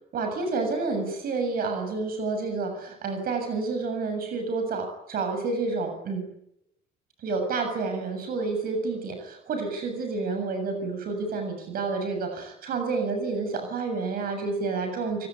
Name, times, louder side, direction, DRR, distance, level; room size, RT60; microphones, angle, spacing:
voice 1, 0.1-6.3 7.2-15.3, right 3 dB, 60° right, 6 dB, 7.1 m, -29 dB
28.0 x 20.0 x 9.7 m, 0.74 s
cardioid pair, 110°, 17 cm